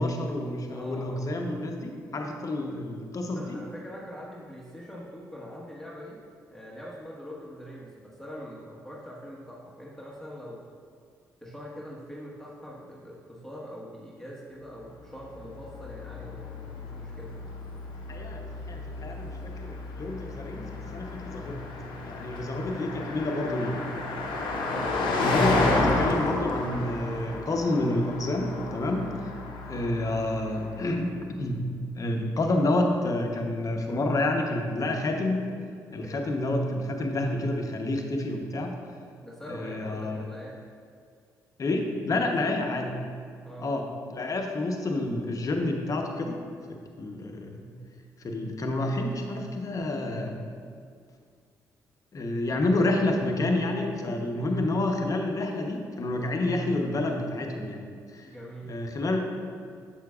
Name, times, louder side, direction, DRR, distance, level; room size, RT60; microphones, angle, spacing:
voice 1, 0.0-3.6 18.1-21.7 22.0-23.8 25.2-29.3 29.7-31.7 32.0-35.5 35.9-38.7 39.5-40.2 41.6-42.9 43.6-43.8 44.1-46.4 46.7-47.7 48.2-50.4 52.1-57.8 58.1-58.3 58.7-59.2, left 2 dB, 45° left, 3 dB, 0.9 m, -29 dB
voice 2, 0.7-1.3 3.3-6.2 6.5-10.6 11.4-17.4 24.5-25.0 35.9-36.3 39.2-40.6 42.2-42.6 43.4-43.7 58.3-58.8, equal, 5° left, -5 dB, 1.3 m, -43 dB
Car passing by, 15.2-30.9, left 3 dB, 75° left, 0.9 m, -32 dB
7.3 x 6.6 x 2.4 m, 2.2 s
supercardioid pair, 55°, 8 cm